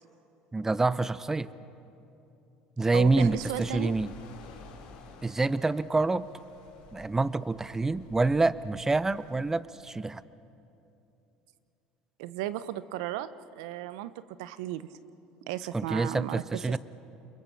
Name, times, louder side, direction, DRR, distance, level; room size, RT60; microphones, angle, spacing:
voice 1, 0.5-1.5 2.8-4.1 5.2-6.3 6.9-10.2 15.7-16.8, right 3 dB, 15° right, 17 dB, 0.7 m, -27 dB
voice 2, 2.9-3.9 12.2-14.1 14.4-14.9 15.5-16.8, right 13 dB, 85° right, 15 dB, 0.8 m, -35 dB
sound 1, 3.0-9.6, left 4 dB, 85° left, 3.9 m, -50 dB
30.0 x 22.0 x 7.2 m, 2.8 s
supercardioid pair, 90°, 3 cm